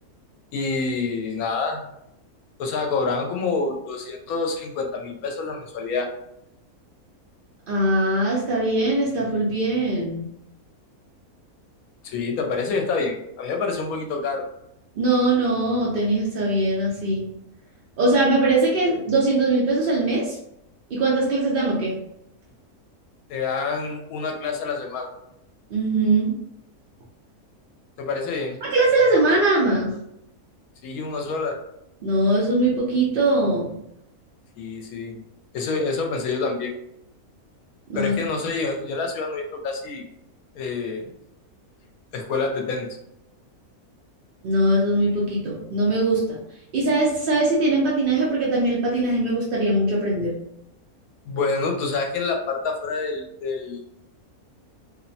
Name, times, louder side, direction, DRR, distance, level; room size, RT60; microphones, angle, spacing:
voice 1, 0.5-1.8 2.6-6.1 12.0-14.5 23.3-25.1 28.0-28.6 30.8-31.6 34.6-35.2 35.5-36.8 38.0-40.0 40.5-41.1 42.1-42.9 51.3-53.8, left 4 dB, 75° left, 2 dB, 1.0 m, -27 dB
voice 2, 7.7-10.3 15.0-17.3 18.0-20.4 20.9-22.0 25.7-26.3 28.6-29.9 32.0-33.8 37.9-38.1 44.4-46.4 46.7-50.3, right 2 dB, 65° right, -5 dB, 0.5 m, -21 dB
2.8 x 2.0 x 2.6 m, 0.79 s
omnidirectional pair, 1.6 m